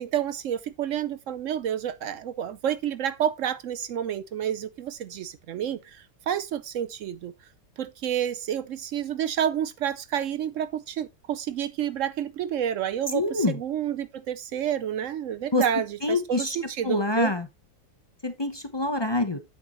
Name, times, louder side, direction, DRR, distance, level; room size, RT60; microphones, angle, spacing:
voice 1, 0.0-7.3 7.8-17.3, right 9 dB, 70° right, 0.7 m, -29 dB
voice 2, 13.1-13.6 15.5-15.6 16.0-16.6 16.8-17.5 18.2-19.4, left 2 dB, 35° left, 0.4 m, -25 dB
9.0 x 6.8 x 3.0 m
omnidirectional pair, 1.9 m